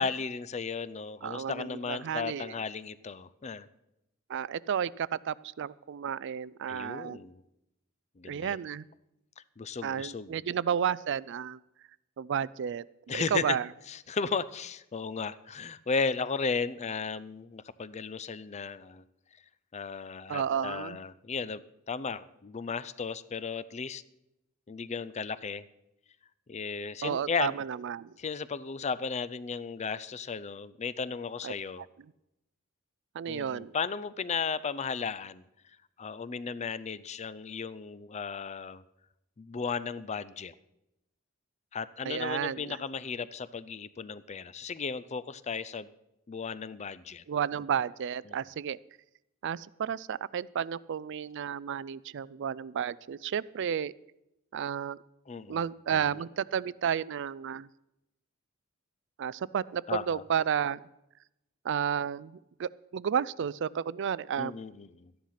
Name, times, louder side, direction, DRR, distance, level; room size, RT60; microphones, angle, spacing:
voice 1, 0.0-3.7 6.7-7.4 8.2-8.6 9.6-10.4 13.1-13.6 13.9-19.0 19.7-21.6 21.9-24.0 24.7-25.7 26.5-27.5 28.2-31.9 33.3-35.5 36.0-38.8 39.4-40.5 41.7-45.9 46.3-47.2 48.3-48.4 55.3-55.7 55.9-56.0 59.9-60.2 64.4-65.1, left 5 dB, 30° left, 17 dB, 0.5 m, -35 dB
voice 2, 1.2-2.5 4.3-7.2 8.2-8.9 9.8-11.6 12.2-12.8 13.1-13.7 20.3-21.0 27.0-28.1 31.4-31.5 33.1-33.7 42.1-42.8 47.3-48.8 49.4-53.9 54.5-55.0 55.5-57.7 59.2-60.8 61.6-64.5, right 8 dB, 60° right, 20 dB, 0.4 m, -32 dB
13.0 x 10.5 x 5.7 m, 0.88 s
head